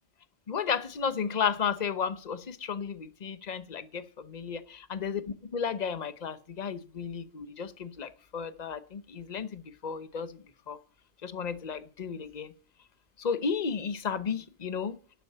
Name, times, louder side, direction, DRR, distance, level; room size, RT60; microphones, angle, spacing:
voice 1, 0.5-4.6 4.9-10.8 11.2-12.5 13.2-15.0, left 6 dB, 35° left, 0.9 m, -33 dB
11.5 x 7.0 x 8.4 m
omnidirectional pair, 1.4 m